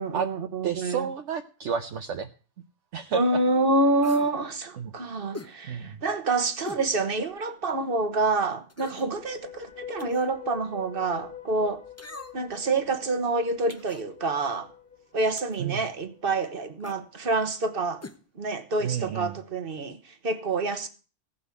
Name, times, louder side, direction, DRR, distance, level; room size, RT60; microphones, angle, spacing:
voice 1, 0.0-1.1 3.1-11.8 12.3-14.7 15.1-18.0 18.4-20.9, right 2 dB, 50° right, 1.4 m, -27 dB
voice 2, 0.6-2.3 2.9-3.2 4.8-4.9 5.7-6.0 15.6-15.8 18.8-19.4, right 7 dB, 80° right, 1.1 m, -30 dB
sound 1, 4.0-4.4 5.3-5.6 6.6-6.9 7.4-7.5 8.7-9.1 10.0-10.3 12.0-12.5 13.7-14.1 15.4-15.6 16.8-17.0 18.0-18.2 18.5-18.6, left 2 dB, 15° left, 0.6 m, -41 dB
sound 2, 9.1-16.3, left 8 dB, 45° left, 1.3 m, -45 dB
16.5 x 5.6 x 8.3 m
omnidirectional pair, 1.2 m